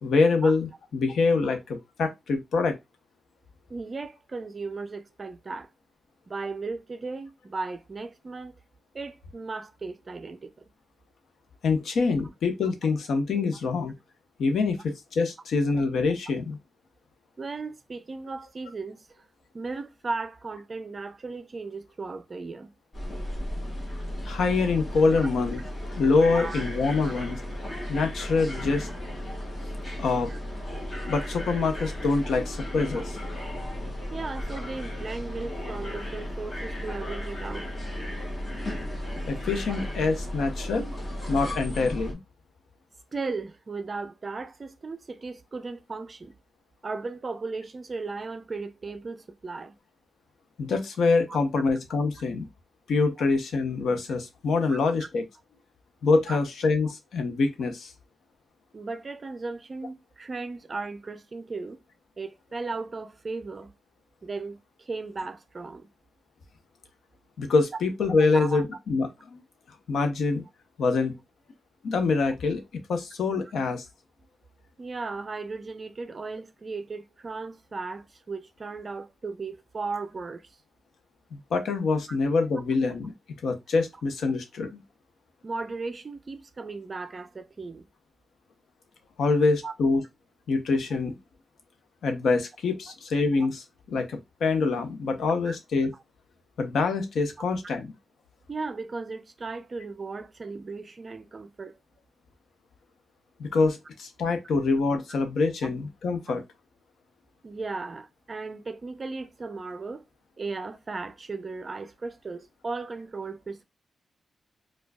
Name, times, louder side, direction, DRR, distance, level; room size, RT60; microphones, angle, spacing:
voice 1, 0.0-2.8 11.6-13.9 14.4-16.6 24.2-25.6 26.0-27.4 27.9-28.9 30.0-30.3 31.1-33.2 39.3-40.9 41.3-42.2 50.6-52.5 52.9-55.2 56.0-57.9 67.4-69.4 69.9-70.4 70.8-71.1 71.8-72.6 72.9-73.8 81.3-83.1 83.4-84.8 89.2-90.0 90.5-91.2 92.0-93.6 93.9-95.9 96.6-97.9 103.4-106.4, left 4 dB, 80° left, 0.8 m, -25 dB
voice 2, 3.7-5.7 6.3-8.6 8.9-10.6 17.4-19.3 19.5-22.7 26.3-26.6 27.0-27.1 28.5-28.7 30.3-30.4 32.3-32.4 34.1-37.7 43.1-46.3 46.8-49.8 51.3-51.4 54.7-54.8 56.3-56.4 58.7-61.8 62.2-63.7 64.2-65.9 68.3-68.6 74.8-80.6 82.1-82.2 85.4-87.9 89.6-89.7 95.5-95.6 97.6-97.7 98.5-101.8 107.4-110.0 110.4-113.6, right 3 dB, 30° right, 0.4 m, -36 dB
sound 1, 22.9-42.1, left 1 dB, 30° left, 1.2 m, -35 dB
4.7 x 2.3 x 2.2 m
wide cardioid pair, 155°, 0 cm